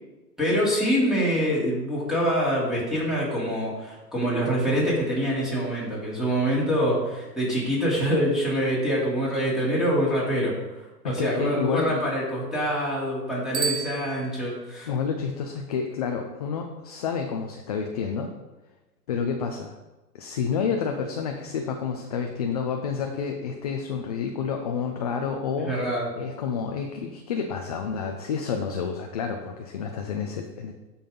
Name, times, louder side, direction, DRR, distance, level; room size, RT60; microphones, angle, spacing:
voice 1, 0.4-14.9 25.6-26.1, equal, ahead, -7 dB, 3.0 m, -25 dB
voice 2, 11.0-12.0 14.9-18.3 19.1-19.7 20.1-25.8 26.2-30.7, left 6 dB, 25° left, 3 dB, 0.4 m, -29 dB
Bicycle bell, 13.5-14.8, right 7 dB, 90° right, 1.3 m, -32 dB
12.0 x 5.7 x 3.8 m, 1.1 s
hypercardioid pair, 135°, 49 cm